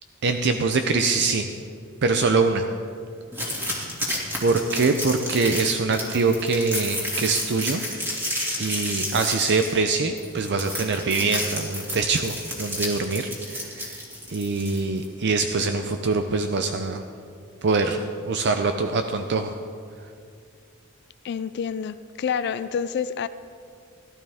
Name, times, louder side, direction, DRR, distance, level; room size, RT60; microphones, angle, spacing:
voice 1, 0.2-1.6 2.0-2.7 4.4-7.8 8.6-14.0 14.3-17.0 17.6-19.5, right 4 dB, 55° right, 6 dB, 0.5 m, -24 dB
sound 1, 3.3-15.1, equal, 10° right, 2.3 m, -31 dB
voice 2, 21.2-23.3, left 7 dB, 50° left, 13 dB, 0.3 m, -28 dB
17.0 x 12.0 x 3.5 m, 2.3 s
head